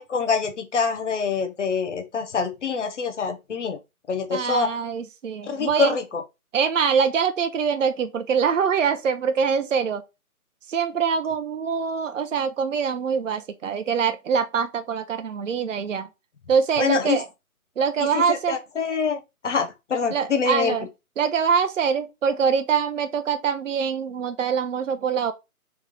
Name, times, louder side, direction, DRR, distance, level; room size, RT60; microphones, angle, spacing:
voice 1, 0.0-3.8 4.1-4.7 5.4-6.2 16.8-17.2 18.3-20.8, left 5 dB, 50° left, 1.0 m, -25 dB
voice 2, 4.3-6.0 6.5-10.0 10.7-16.1 16.5-17.3 17.8-18.6 20.1-20.9 21.2-25.3, right 6 dB, 55° right, 0.6 m, -24 dB
3.6 x 3.0 x 3.6 m
figure-of-eight pair, 155°, 45 cm